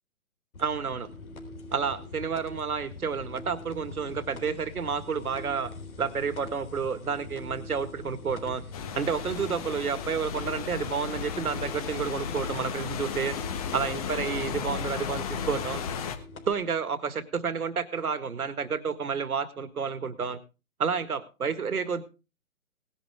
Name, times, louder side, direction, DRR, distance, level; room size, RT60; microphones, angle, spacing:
sound 1, 0.5-16.5, left 2 dB, 75° left, 3.8 m, -44 dB
voice 1, 0.6-1.1 1.7-5.7 6.0-8.6 8.9-13.4 13.7-15.8 16.5-20.4 20.8-22.0, right 6 dB, 85° right, 13 dB, 1.9 m, -30 dB
sound 2, 8.7-16.2, left 7 dB, 25° left, 1.3 m, -34 dB
18.5 x 10.5 x 3.6 m, 0.31 s
hypercardioid pair, 155°, 43 cm